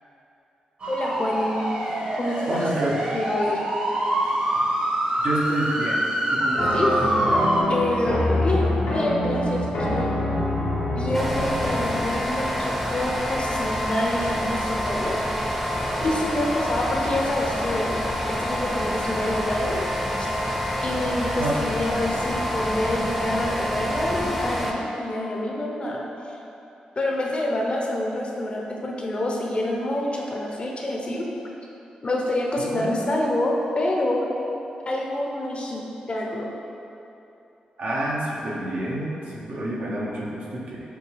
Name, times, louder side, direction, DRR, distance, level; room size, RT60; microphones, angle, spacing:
sound 1, 0.8-7.6, right 1 dB, 50° right, 1.2 m, -25 dB
voice 1, 0.9-1.7 2.2-2.6 3.1-3.6 6.7-6.9 7.7-10.1 11.0-15.2 16.0-18.0 18.4-19.9 20.2-20.3 20.8-26.1 27.0-31.3 32.0-34.3 34.9-35.8 36.1-36.5, left 1 dB, 40° left, -1 dB, 0.7 m, -27 dB
voice 2, 2.5-3.2 5.2-6.0 6.3-6.9 21.4-21.6 32.7-33.0 37.8-40.8, right 1 dB, 70° right, -5 dB, 0.9 m, -28 dB
sound 2, 6.6-12.1, left 1 dB, 90° left, 1.0 m, -25 dB
sound 3, 11.1-24.7, equal, 5° right, 0.7 m, -27 dB
6.7 x 2.3 x 3.3 m, 2.9 s
supercardioid pair, 55°, 3 cm